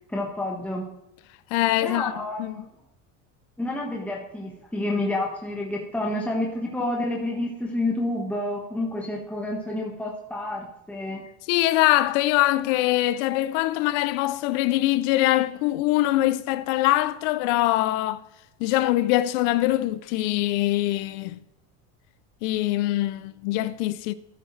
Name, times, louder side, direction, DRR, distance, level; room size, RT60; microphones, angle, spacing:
voice 1, 0.1-0.8 1.8-2.7 3.6-11.2, left 1 dB, 5° left, 1.4 m, -29 dB
voice 2, 1.5-2.1 2.4-2.6 11.5-18.2 18.6-21.4 22.4-24.1, left 16 dB, 75° left, 0.6 m, -23 dB
14.0 x 7.9 x 3.2 m
supercardioid pair, 125°, 37 cm